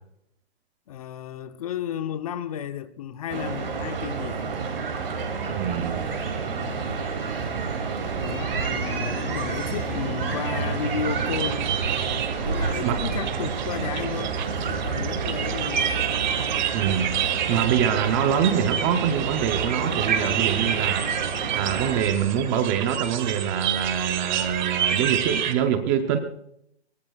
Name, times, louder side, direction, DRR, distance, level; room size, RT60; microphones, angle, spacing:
voice 1, 0.9-4.5 6.6-7.1 8.2-11.7 12.4-16.2, left 9 dB, 35° left, 0.8 m, -33 dB
sound 1, 3.3-22.0, right 5 dB, 60° right, 4.7 m, -30 dB
voice 2, 5.5-6.0 12.8-13.0 16.7-21.3 21.5-26.2, right 8 dB, 15° right, 0.6 m, -25 dB
sound 2, 6.9-15.0 15.7-17.1 17.8-17.9 18.1-18.2 19.9-20.0 20.6-20.8 21.3-22.6, right 4 dB, 90° right, 1.8 m, -39 dB
sound 3, 11.1-25.5, right 9 dB, 45° right, 1.7 m, -28 dB
22.5 x 21.5 x 2.4 m
hypercardioid pair, 155°, 33 cm